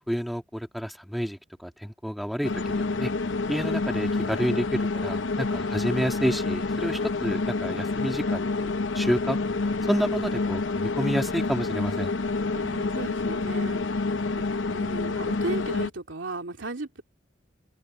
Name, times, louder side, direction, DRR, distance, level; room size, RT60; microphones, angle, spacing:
voice 1, 0.1-2.5 2.8-3.1 3.5-9.4 9.9-12.1, equal, ahead, 2.2 m, -29 dB
sound 1, 2.4-15.9, left 3 dB, 80° left, 0.7 m, -28 dB
voice 2, 12.5-14.1 14.4-17.0, right 2 dB, 90° right, 2.6 m, -36 dB
head